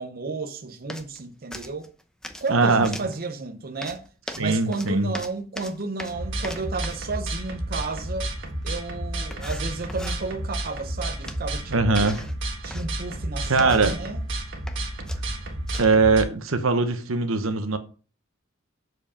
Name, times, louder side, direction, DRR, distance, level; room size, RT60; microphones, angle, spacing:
voice 1, 0.0-1.9 2.4-4.0 4.4-8.3 8.6-12.1 12.6-14.2, right 3 dB, 45° right, 0.7 m, -32 dB
sound 1, 0.9-1.2 1.5-2.5 2.8-3.2 3.8-7.1 8.6-8.7 9.3-10.2 11.3-11.6 12.0-12.9 13.5-14.1 14.5-14.8 15.1-16.0, left 1 dB, 5° left, 0.8 m, -40 dB
voice 2, 2.5-3.0 4.4-5.1 11.7-12.2 13.5-13.9 15.8-17.8, right 3 dB, 80° right, 1.0 m, -21 dB
sound 2, 6.1-16.2, right 1 dB, 65° right, 1.6 m, -31 dB
7.4 x 4.8 x 5.6 m
head